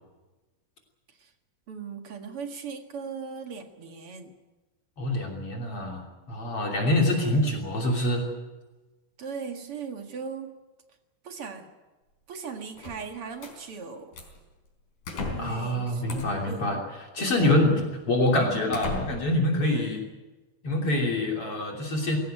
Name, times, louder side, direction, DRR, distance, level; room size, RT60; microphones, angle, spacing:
voice 1, 1.7-4.3 9.2-10.6 11.2-11.7 12.3-14.1 15.3-16.9 17.6-17.9, right 5 dB, 50° right, 5 dB, 2.5 m, -38 dB
voice 2, 5.0-8.3 15.4-16.8 17.1-20.0 20.6-22.2, left 1 dB, 45° left, 1 dB, 3.9 m, -25 dB
sound 1, 12.8-13.6 14.1-14.4 15.0-15.6 16.1-16.5 17.4-17.5 18.1-18.2 18.7-19.4, left 3 dB, 70° left, 5.8 m, -35 dB
22.0 x 17.5 x 9.1 m, 1.2 s
omnidirectional pair, 3.6 m